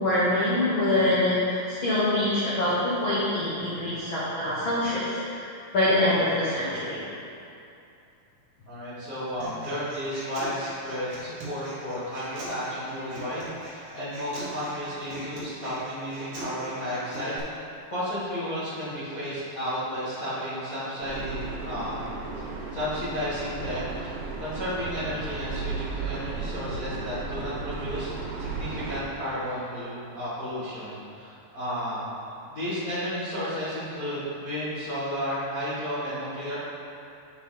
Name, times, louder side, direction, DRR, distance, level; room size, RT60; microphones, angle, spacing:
voice 1, 0.0-7.0, left 1 dB, 65° left, -10 dB, 1.2 m, -25 dB
voice 2, 8.7-17.4 17.9-22.0 22.3-22.4 22.7-32.1 32.5-36.6, equal, 45° left, -13 dB, 1.1 m, -33 dB
Human voice, 9.4-17.4, right 1 dB, 50° right, 2.9 m, -41 dB
sound 1, 21.0-29.0, right 4 dB, 70° right, 2.5 m, -35 dB
8.7 x 5.7 x 4.0 m, 2.7 s
omnidirectional pair, 4.5 m